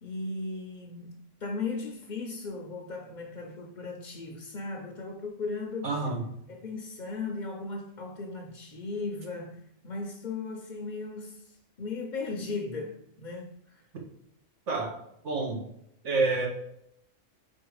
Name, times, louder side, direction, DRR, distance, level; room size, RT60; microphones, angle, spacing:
voice 1, 0.0-5.9 6.5-13.9, left 3 dB, 45° left, 0.8 m, -37 dB
voice 2, 5.8-6.2 14.7-14.9 15.2-15.6 16.0-16.5, right 3 dB, 65° right, 1.4 m, -28 dB
4.6 x 4.6 x 4.7 m
omnidirectional pair, 1.3 m